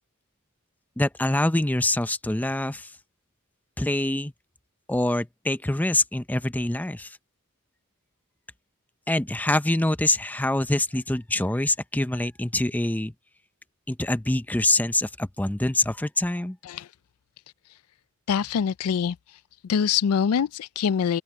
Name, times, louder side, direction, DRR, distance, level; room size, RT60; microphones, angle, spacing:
voice 1, 1.0-2.9 3.8-4.3 4.9-7.2 9.1-13.1 13.9-16.6, left 1 dB, 5° left, 0.5 m, -25 dB
voice 2, 18.3-19.2 19.6-21.2, left 7 dB, 85° left, 0.4 m, -24 dB
open air
head